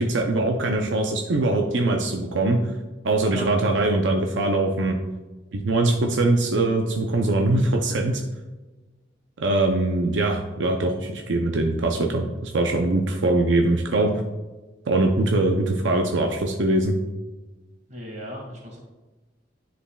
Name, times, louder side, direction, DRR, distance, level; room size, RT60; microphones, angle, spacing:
voice 1, 0.0-2.6 3.0-5.0 5.5-8.2 9.4-14.1 14.9-16.9, right 2 dB, 85° right, 2 dB, 0.6 m, -22 dB
voice 2, 17.9-18.8, equal, 40° right, -1 dB, 2.1 m, -36 dB
9.9 x 5.0 x 2.3 m, 1.2 s
head